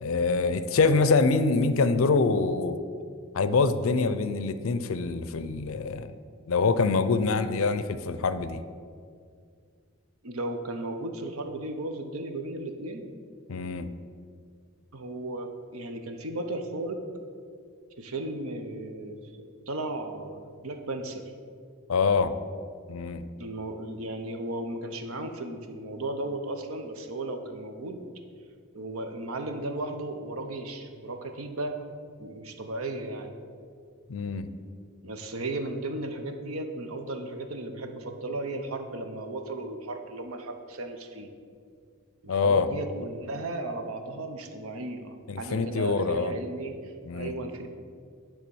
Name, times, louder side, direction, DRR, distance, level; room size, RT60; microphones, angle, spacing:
voice 1, 0.0-2.7 3.3-6.1 6.5-8.6 13.5-13.9 21.9-22.3 22.9-23.2 34.1-34.5 42.3-42.7 45.3-46.4 47.0-47.3, left 4 dB, 70° left, 11 dB, 0.5 m, -25 dB
voice 2, 10.2-13.1 14.9-17.0 18.0-21.3 23.4-28.0 28.7-31.8 32.2-33.4 35.0-41.3 42.2-47.7, right 2 dB, 80° right, 6 dB, 0.8 m, -35 dB
10.5 x 3.7 x 7.0 m, 2.2 s
head